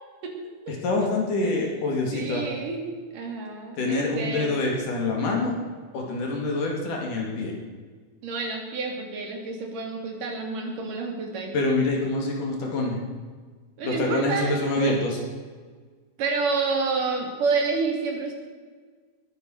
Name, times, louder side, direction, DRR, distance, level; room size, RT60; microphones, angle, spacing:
voice 1, 0.7-2.5 3.8-5.6 5.9-7.5 11.5-13.0 13.8-15.2, left 2 dB, 75° left, -1 dB, 4.7 m, -26 dB
voice 2, 2.1-4.5 8.2-11.5 13.8-15.0 16.2-18.3, right 4 dB, 80° right, 2 dB, 4.5 m, -29 dB
21.0 x 10.5 x 6.7 m, 1.5 s
omnidirectional pair, 3.7 m